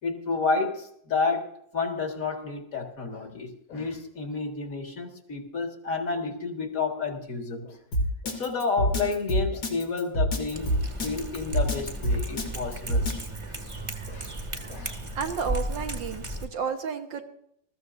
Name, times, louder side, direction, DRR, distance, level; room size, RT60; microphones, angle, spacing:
voice 1, 0.0-7.8 8.2-10.7 11.0-13.1 13.4-13.6 14.1-14.3 14.7-15.0, left 4 dB, 50° left, 2.2 m, -30 dB
Drum kit, 7.9-13.3, equal, 80° left, 3.4 m, -26 dB
Cat, 10.5-16.5, right 1 dB, 20° right, 1.1 m, -35 dB
voice 2, 15.2-17.2, right 6 dB, 85° right, 2.2 m, -31 dB
21.0 x 14.5 x 2.6 m
omnidirectional pair, 2.0 m